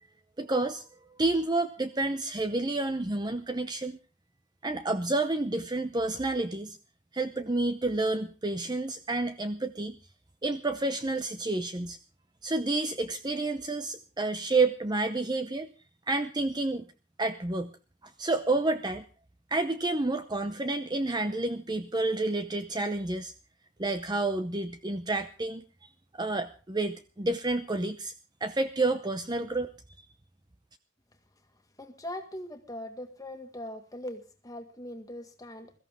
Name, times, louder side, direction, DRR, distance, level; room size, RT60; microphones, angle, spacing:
voice 1, 0.4-0.8 1.2-4.0 4.6-6.8 7.1-10.0 10.4-12.0 12.4-15.7 16.1-16.8 17.2-17.7 18.2-19.0 19.5-23.3 23.8-25.6 26.1-28.1 28.4-29.7, right 2 dB, 20° right, 8 dB, 0.7 m, -29 dB
voice 2, 31.8-35.7, left 1 dB, 15° left, 6 dB, 1.8 m, -41 dB
22.0 x 14.0 x 3.6 m, 0.35 s
head